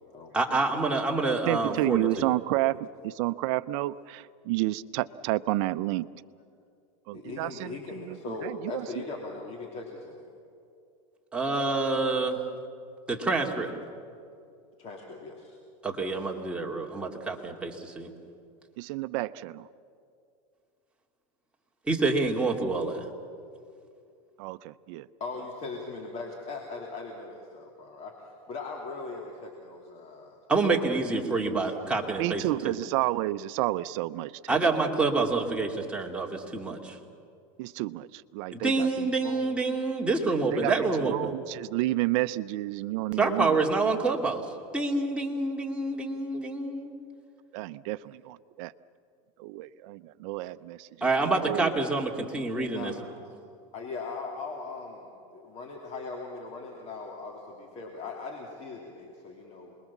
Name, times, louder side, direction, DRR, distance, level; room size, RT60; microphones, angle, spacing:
voice 1, 0.3-2.3 11.3-12.4 13.1-13.7 15.8-18.1 21.9-23.1 30.5-32.8 34.5-37.0 38.5-41.2 43.2-44.4 44.7-47.0 51.0-52.9, right 3 dB, 5° right, -1 dB, 2.5 m, -27 dB
voice 2, 1.5-6.1 7.1-8.9 18.8-19.7 24.4-25.1 32.2-34.6 37.6-39.5 40.5-40.7 41.0-43.6 47.5-48.7 49.4-51.1 51.4-51.7, right 17 dB, 60° right, 14 dB, 0.7 m, -31 dB
voice 3, 7.1-10.2 14.8-15.6 25.2-30.4 48.0-48.1 52.7-52.9 53.7-59.8, left 3 dB, 35° left, 0 dB, 3.0 m, -39 dB
27.5 x 21.5 x 7.3 m, 2.5 s
supercardioid pair, 130°, 18 cm